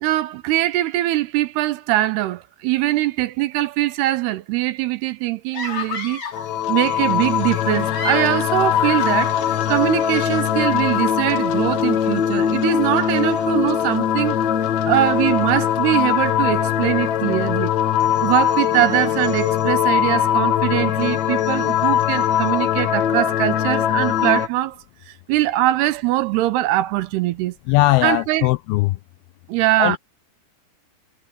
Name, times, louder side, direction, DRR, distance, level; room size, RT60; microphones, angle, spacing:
voice 1, 0.0-6.2 6.7-9.4 9.7-14.4 14.9-17.7 18.2-24.8 25.1-27.6 28.0-28.5 29.5-30.0, right 16 dB, 80° right, 2.7 m, -22 dB
sound 1, 5.5-6.5 7.7-10.1, left 4 dB, 40° left, 4.3 m, -31 dB
sound 2, 6.3-24.5, left 10 dB, 65° left, 1.8 m, -21 dB
voice 2, 27.7-29.0 29.8-30.0, left 18 dB, 90° left, 2.2 m, -19 dB
omnidirectional pair, 5.0 m